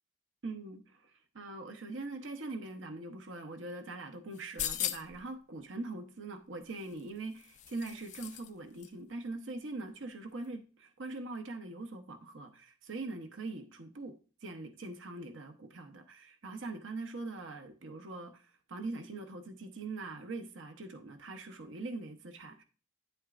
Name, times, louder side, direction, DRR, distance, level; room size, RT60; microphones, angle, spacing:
voice 1, 0.4-14.2 14.4-22.6, right 2 dB, 65° right, 0.8 m, -42 dB
sound 1, 4.3-5.3 6.8-8.5 8.8-8.9, left 10 dB, 35° left, 0.4 m, -38 dB
10.0 x 7.9 x 2.5 m
head